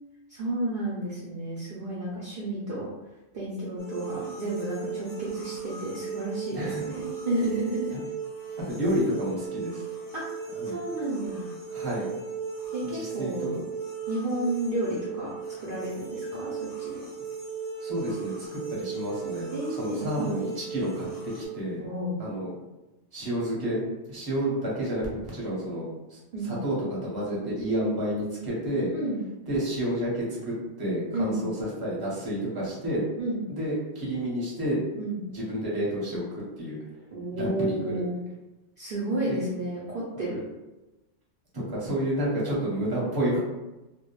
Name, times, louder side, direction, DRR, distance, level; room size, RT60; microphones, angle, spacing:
voice 1, 0.3-2.9 3.3-7.9 10.1-10.2 10.6-11.5 12.7-13.6 14.1-15.3 15.6-17.0 19.5-20.5 21.8-22.2 26.3-26.6 28.9-29.2 31.1-31.4 33.2-33.4 35.0-35.2 37.1-38.2 38.8-40.4, right 1 dB, 60° right, -6 dB, 0.6 m, -31 dB
sound 1, 3.8-21.4, right 5 dB, 35° left, 0.3 m, -36 dB
voice 2, 6.5-6.9 7.9-8.0 8.7-9.8 10.5-10.8 11.7-12.1 12.9-13.5 17.8-21.8 22.2-22.5 23.1-26.2 26.4-28.9 29.5-33.0 33.5-34.8 35.3-36.8 37.3-38.0 41.5-43.4, equal, 25° right, -6 dB, 0.7 m, -30 dB
2.2 x 2.1 x 2.9 m, 1.0 s
omnidirectional pair, 1.3 m